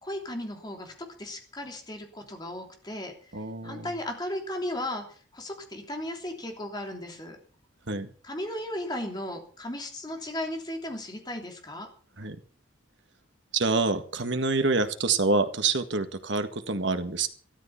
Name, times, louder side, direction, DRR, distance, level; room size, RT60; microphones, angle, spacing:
voice 1, 0.0-0.9 1.2-3.1 3.6-7.4 8.2-11.9, left 1 dB, 20° left, 3 dB, 3.2 m, -35 dB
voice 2, 3.3-3.9 7.9-8.1 12.2-12.4 13.5-17.3, right 3 dB, 70° right, 8 dB, 1.7 m, -27 dB
13.5 x 12.5 x 5.9 m, 0.43 s
head